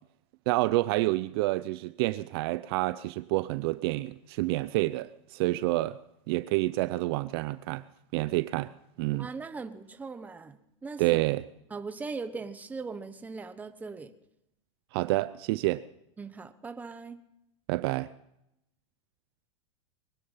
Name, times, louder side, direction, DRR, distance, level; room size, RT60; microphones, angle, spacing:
voice 1, 0.5-6.0 6.3-7.8 8.1-8.7 9.0-9.3 11.0-11.4 14.9-15.8 17.7-18.1, right 19 dB, 50° right, 0.5 m, -28 dB
voice 2, 9.1-11.2 11.7-14.1 16.2-17.2, right 4 dB, 10° right, 1.0 m, -40 dB
23.0 x 10.0 x 5.6 m
supercardioid pair, 145°, 16 cm